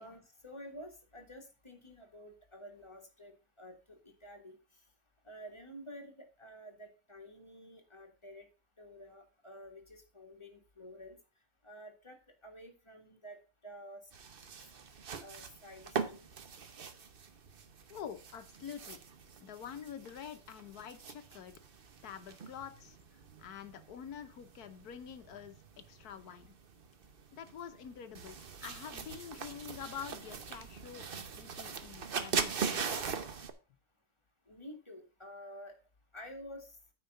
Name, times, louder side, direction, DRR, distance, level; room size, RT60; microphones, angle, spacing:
voice 1, 0.0-4.6 5.2-8.5 8.8-11.2 11.6-12.2 12.4-14.0 15.2-16.3 34.5-35.8 36.1-36.8, equal, 15° left, 2 dB, 1.8 m, -50 dB
sound 1, 14.1-33.5, right 6 dB, 55° right, 0.6 m, -42 dB
voice 2, 17.9-19.0 19.4-21.6 22.0-23.0 23.4-25.6 25.9-26.5 27.3-33.1, left 8 dB, 60° left, 10 dB, 1.2 m, -47 dB
9.2 x 4.6 x 6.6 m, 0.33 s
omnidirectional pair, 2.1 m